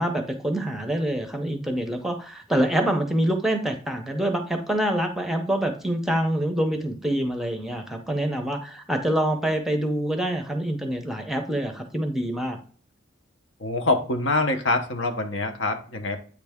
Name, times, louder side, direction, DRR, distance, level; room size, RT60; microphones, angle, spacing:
voice 1, 0.0-12.6, right 1 dB, ahead, 4 dB, 0.6 m, -26 dB
voice 2, 13.6-16.2, left 2 dB, 75° left, 5 dB, 0.9 m, -25 dB
8.3 x 3.3 x 3.5 m, 0.42 s
head